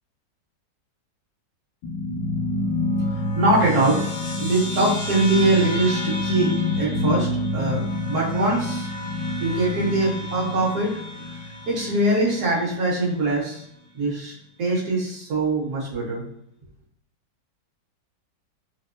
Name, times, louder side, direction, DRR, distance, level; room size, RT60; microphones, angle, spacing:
sound 1, 1.8-12.6, left 2 dB, 85° left, 1.7 m, -28 dB
voice 1, 3.4-4.0 4.4-6.5 6.8-7.3 7.5-7.8 8.0-8.9 9.4-11.0 11.7-13.6 13.9-14.3 14.6-16.2, right 2 dB, 60° right, -6 dB, 1.8 m, -22 dB
5.9 x 2.0 x 2.5 m, 0.71 s
omnidirectional pair, 1.9 m